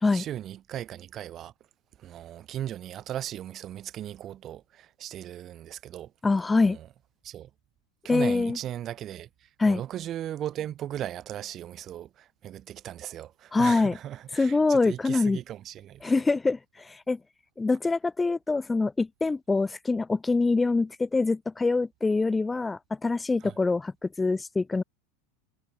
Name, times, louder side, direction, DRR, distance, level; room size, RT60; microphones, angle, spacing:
voice 1, 0.0-1.5 2.0-6.1 6.6-6.9 7.2-7.5 8.0-16.1 23.4-23.5, right 11 dB, 35° right, 6.1 m, -37 dB
voice 2, 6.2-6.8 8.1-8.6 9.6-9.8 13.5-14.0 14.3-15.4 16.0-17.2 17.6-24.8, left 3 dB, 15° left, 2.8 m, -25 dB
figure-of-eight pair, 85°, 0 cm